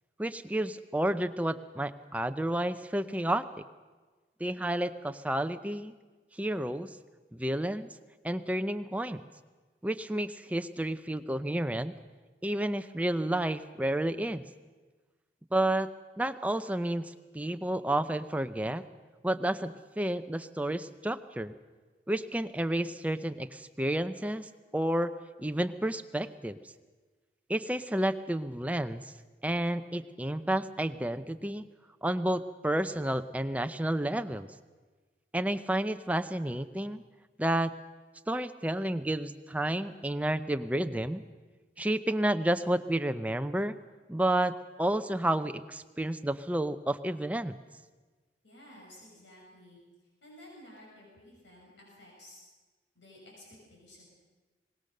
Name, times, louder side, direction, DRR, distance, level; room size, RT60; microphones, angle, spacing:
voice 1, 0.2-3.5 4.4-5.9 6.3-6.9 7.3-7.9 8.2-9.2 9.8-11.9 12.4-14.4 15.5-15.9 16.2-18.8 19.2-21.5 22.1-25.1 25.4-26.6 27.5-29.0 29.4-31.6 32.0-34.5 35.3-37.0 37.4-37.7 38.3-41.2 41.8-43.8 44.1-47.6, right 1 dB, 10° right, 9 dB, 0.6 m, -31 dB
voice 2, 48.4-49.8 50.2-52.4 53.0-54.0, left 1 dB, 90° left, -3 dB, 6.8 m, -53 dB
24.0 x 20.0 x 6.7 m, 1.3 s
head